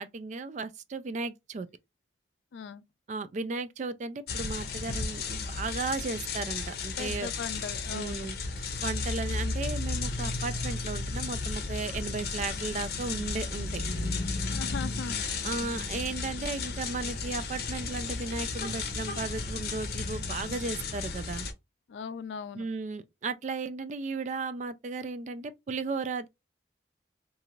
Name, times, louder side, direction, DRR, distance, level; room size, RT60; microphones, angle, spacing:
voice 1, 0.0-1.7 3.1-7.3 7.9-13.8 15.4-21.5 22.5-26.3, right 3 dB, 40° right, 0.3 m, -35 dB
voice 2, 2.5-2.8 7.0-8.3 14.5-15.2 21.9-22.7, left 6 dB, 85° left, 0.3 m, -39 dB
sound 1, 4.3-21.5, left 4 dB, 60° left, 0.7 m, -34 dB
2.6 x 2.4 x 2.9 m
head